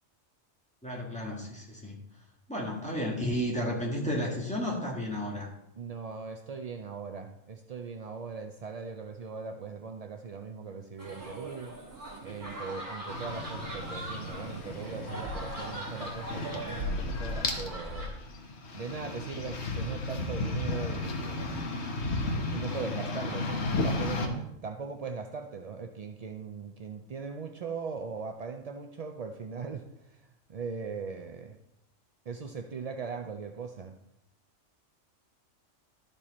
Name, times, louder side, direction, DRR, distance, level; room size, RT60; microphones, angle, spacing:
voice 1, 0.8-2.0 2.5-5.5, equal, 5° left, -3 dB, 1.8 m, -32 dB
voice 2, 5.7-11.7 12.2-18.1 18.7-21.7 22.5-30.2 30.5-31.6 32.3-33.9, right 5 dB, 70° right, 5 dB, 0.3 m, -39 dB
sound 1, 11.0-18.1, equal, 50° right, 3.0 m, -39 dB
sound 2, 13.1-24.3, left 2 dB, 60° left, 1.3 m, -34 dB
12.0 x 5.3 x 4.2 m, 0.84 s
omnidirectional pair, 1.3 m